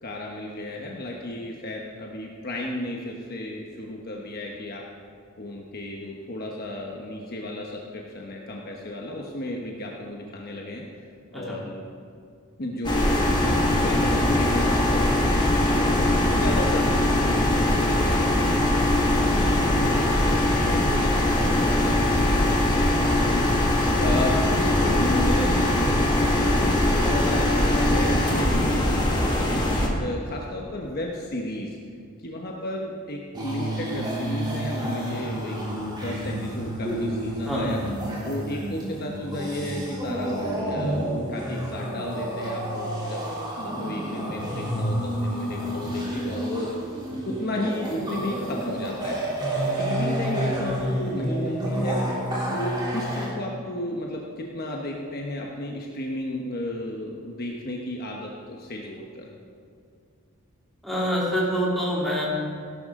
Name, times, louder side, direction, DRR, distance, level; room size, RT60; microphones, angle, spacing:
voice 1, 0.0-4.9 5.4-10.9 11.3-11.8 12.6-18.6 19.0-21.1 21.4-22.9 24.0-29.6 30.0-31.8 32.2-37.8 38.2-43.3 43.6-46.7 47.2-49.2 49.8-52.0 52.5-59.3, left 1 dB, 45° left, -1 dB, 1.1 m, -33 dB
sound 1, 12.8-29.9, left 1 dB, 20° left, 1.7 m, -21 dB
sound 2, 33.3-53.3, right 1 dB, 20° right, 3.2 m, -29 dB
voice 2, 60.8-62.3, equal, ahead, -7 dB, 3.3 m, -25 dB
17.0 x 11.5 x 3.7 m, 2.3 s
head